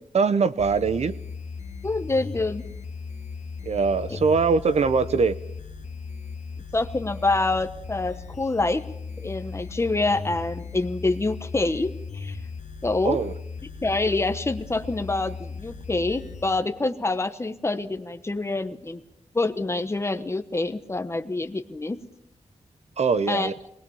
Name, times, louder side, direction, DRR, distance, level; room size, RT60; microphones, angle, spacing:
voice 1, 0.1-1.1 3.6-5.4 13.0-13.3 23.0-23.5, right 5 dB, 60° right, 14 dB, 0.9 m, -22 dB
sound 1, 0.6-16.6, left 5 dB, 70° left, 1.6 m, -37 dB
voice 2, 1.8-2.6 6.7-8.8 9.2-12.4 12.8-13.2 13.8-19.0 19.3-22.0 23.3-23.5, left 2 dB, 20° left, 10 dB, 1.1 m, -26 dB
22.5 x 20.0 x 7.2 m, 0.77 s
wide cardioid pair, 140°, 12 cm